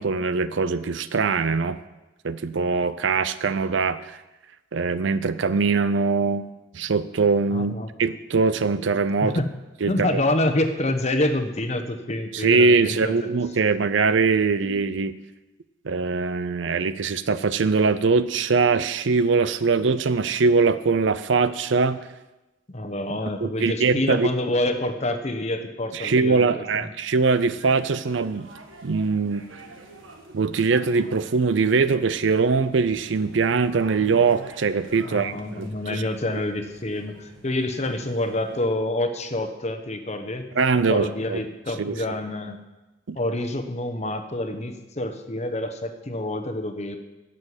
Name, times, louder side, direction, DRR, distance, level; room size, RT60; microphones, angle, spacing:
voice 1, 0.0-1.8 2.2-4.2 4.7-6.5 6.7-7.7 8.0-9.4 9.8-10.2 12.3-15.1 15.8-22.0 23.4-24.3 25.9-28.5 28.8-29.4 30.3-36.0 40.6-41.4 41.8-42.0 43.1-43.2, right 4 dB, 65° right, 14 dB, 0.5 m, -22 dB
voice 2, 7.5-7.9 9.2-9.5 9.9-13.3 22.7-26.9 35.0-40.5 40.7-42.6 43.1-47.0, left 1 dB, 35° left, 7 dB, 1.0 m, -27 dB
sound 1, 27.3-38.7, right 2 dB, 85° right, 1.6 m, -47 dB
11.0 x 7.6 x 8.1 m, 1.1 s
head